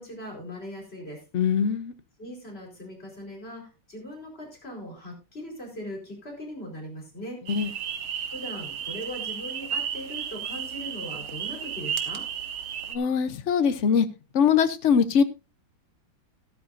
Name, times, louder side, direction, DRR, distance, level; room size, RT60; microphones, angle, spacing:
voice 1, 0.0-1.2 2.2-7.4 8.3-12.2, equal, 30° left, 4.6 m, -39 dB
voice 2, 1.3-1.9 7.5-7.7 12.9-14.1 14.3-15.2, left 7 dB, 55° left, 0.8 m, -22 dB
sound 1, 7.5-13.0, right 8 dB, 90° right, 2.0 m, -33 dB
13.0 x 13.0 x 2.6 m
omnidirectional pair, 2.2 m